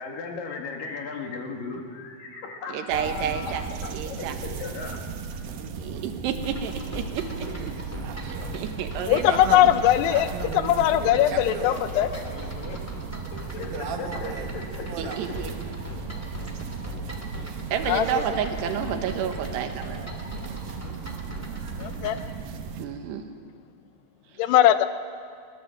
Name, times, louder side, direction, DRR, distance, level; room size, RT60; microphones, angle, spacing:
voice 1, 0.0-5.0 11.5-12.9 13.3-14.9 15.2-15.4, left 4 dB, 60° left, 2 dB, 3.3 m, -37 dB
voice 2, 2.7-4.4 5.7-7.5 8.1-9.4 15.0-15.5 17.4-20.0 22.8-23.2 24.3-24.5, right 8 dB, 85° right, 6 dB, 3.4 m, -31 dB
sound 1, 2.9-22.9, right 6 dB, 65° right, 2.8 m, -35 dB
sound 2, 6.4-22.3, left 1 dB, 5° left, 1.2 m, -40 dB
voice 3, 9.1-12.1 17.9-18.1 21.8-22.2 24.4-24.9, left 12 dB, 85° left, 11 dB, 2.8 m, -20 dB
23.5 x 19.5 x 7.7 m, 2.1 s
omnidirectional pair, 4.8 m